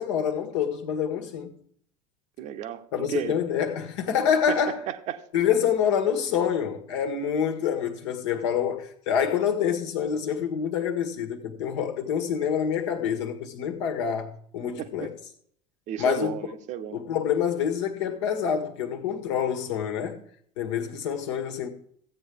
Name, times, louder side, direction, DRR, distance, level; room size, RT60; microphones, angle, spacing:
voice 1, 0.0-1.5 2.9-4.8 5.3-15.1 16.0-16.3 16.9-20.2 20.6-21.7, left 8 dB, 60° left, 1.5 m, -27 dB
voice 2, 2.4-3.4 4.5-4.6 4.9-5.2 14.8-15.1 15.9-17.0, right 10 dB, 45° right, 1.0 m, -33 dB
15.0 x 8.6 x 3.5 m
figure-of-eight pair, 70°, 17 cm